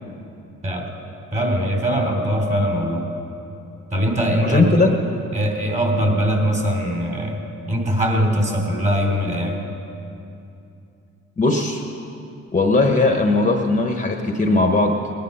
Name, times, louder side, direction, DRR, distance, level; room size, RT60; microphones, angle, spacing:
voice 1, 1.3-3.1 3.9-4.8 5.3-7.4 7.7-9.6, equal, 25° right, 1 dB, 3.0 m, -21 dB
voice 2, 4.4-5.0 11.4-11.8 12.5-15.0, left 2 dB, 25° left, 3 dB, 1.2 m, -18 dB
19.0 x 10.5 x 5.6 m, 2.7 s
cardioid pair, 90°, 30 cm